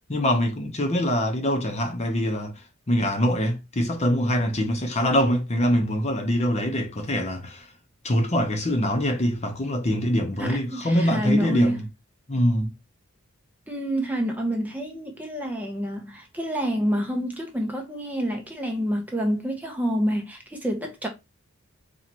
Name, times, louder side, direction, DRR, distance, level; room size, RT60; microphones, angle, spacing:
voice 1, 0.1-7.7 8.0-11.8 12.3-12.7, equal, 30° left, 0.9 m, -24 dB
voice 2, 10.4-11.8 13.7-21.1, equal, 10° right, 0.8 m, -27 dB
4.2 x 3.2 x 2.9 m
head